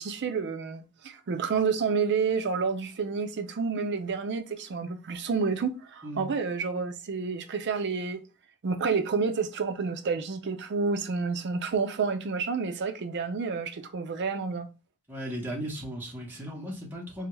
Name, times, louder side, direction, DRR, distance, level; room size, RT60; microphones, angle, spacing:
voice 1, 0.0-8.2 8.6-14.7, right 5 dB, 55° right, 0.4 m, -29 dB
voice 2, 15.1-17.3, equal, 10° right, 0.9 m, -36 dB
3.4 x 2.4 x 3.0 m
head